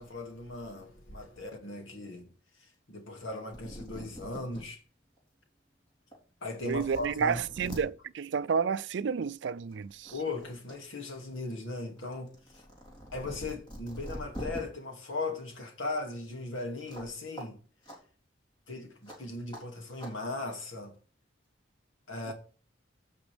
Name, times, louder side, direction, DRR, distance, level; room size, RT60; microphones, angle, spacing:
voice 1, 0.0-2.3 2.9-4.8 6.4-7.4 10.1-12.6 13.1-17.6 18.7-20.9 22.1-22.3, left 2 dB, 85° left, 2.4 m, -38 dB
sound 1, 3.5-4.6 5.2-5.3 6.1-6.2 6.5-7.8 9.1-9.3 9.7-10.8 11.1-14.6 16.9-17.1 17.4-17.5 17.8-18.0 19.0-19.2 19.5-19.6 20.0-20.1, equal, 25° left, 3.6 m, -44 dB
voice 2, 6.6-10.1 22.3-22.4, right 6 dB, 65° right, 0.4 m, -30 dB
16.0 x 6.0 x 3.5 m
head